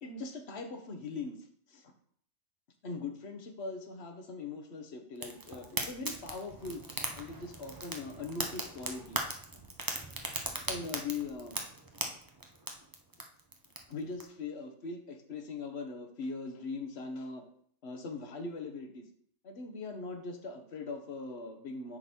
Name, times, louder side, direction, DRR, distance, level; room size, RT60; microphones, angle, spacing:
voice 1, 0.0-1.4 1.7-1.9 2.8-6.8 7.2-9.2 10.1-10.2 10.7-11.6 13.9-17.4 17.8-19.1 19.4-22.0, left 4 dB, 55° left, 4 dB, 1.3 m, -41 dB
Fire, 5.1-14.2, right 2 dB, 20° right, 0.7 m, -39 dB
9.8 x 4.0 x 4.4 m, 0.63 s
omnidirectional pair, 1.3 m